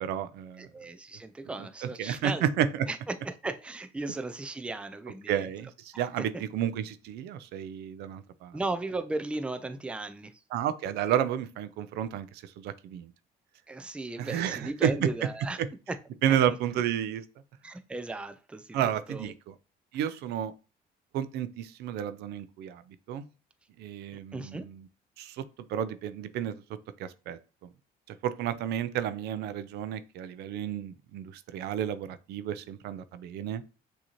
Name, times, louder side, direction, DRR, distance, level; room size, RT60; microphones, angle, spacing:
voice 1, 0.0-0.7 1.8-2.9 5.3-8.6 10.5-13.1 14.2-15.1 15.6-15.7 16.2-17.2 18.7-19.5 19.9-20.5 21.1-22.8 23.1-23.2 23.8-24.8 25.2-25.4 25.7-26.5 27.0-27.4 28.2-33.6, right 10 dB, 80° right, 0.4 m, -31 dB
voice 2, 0.6-2.5 2.9-5.5 5.9-6.4 8.5-10.3 13.7-15.6 15.9-16.0 16.3-16.6 17.6-18.8 19.1-19.3 24.3-24.6, right 2 dB, 5° right, 0.4 m, -36 dB
6.1 x 2.8 x 2.9 m
cardioid pair, 110°, 17 cm